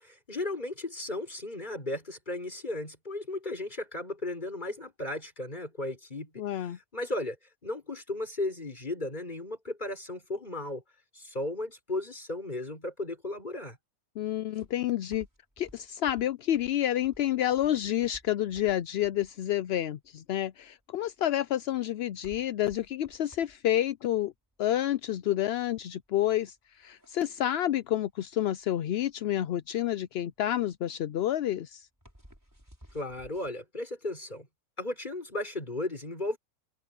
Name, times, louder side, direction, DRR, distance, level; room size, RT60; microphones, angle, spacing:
voice 1, 0.0-7.4 7.6-10.8 11.1-13.8 32.9-34.5 34.8-36.4, left 2 dB, 30° left, 5.8 m, -35 dB
voice 2, 6.4-6.8 14.2-15.3 15.6-24.3 24.6-31.9, left 12 dB, 65° left, 0.6 m, -29 dB
sound 1, 14.5-33.5, equal, 10° right, 6.6 m, -57 dB
omnidirectional pair, 1.5 m